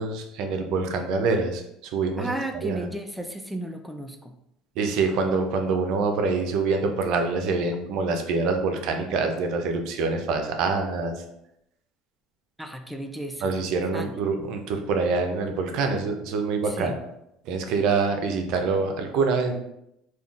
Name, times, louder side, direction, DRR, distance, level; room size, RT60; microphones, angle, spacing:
voice 1, 0.0-1.6 1.9-2.3 2.6-2.8 4.8-11.2 13.4-16.9 17.5-19.5, right 4 dB, 70° right, 5 dB, 0.5 m, -25 dB
voice 2, 2.2-4.3 12.6-13.5 13.9-14.1 16.7-17.0, right 1 dB, ahead, 4 dB, 0.3 m, -34 dB
3.6 x 2.3 x 2.4 m, 0.80 s
supercardioid pair, 100°, 0 cm